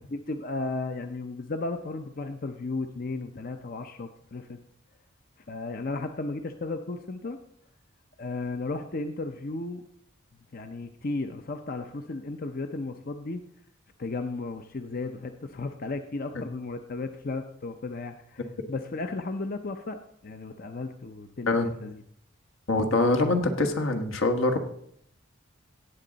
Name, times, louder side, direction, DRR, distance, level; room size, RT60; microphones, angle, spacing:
voice 1, 0.1-4.6 5.5-7.4 8.2-9.8 10.5-13.4 14.0-21.6 21.8-22.0, left 3 dB, 45° left, 7 dB, 0.6 m, -34 dB
voice 2, 22.7-24.6, left 2 dB, 75° left, 5 dB, 1.4 m, -24 dB
17.5 x 7.7 x 4.0 m, 0.69 s
head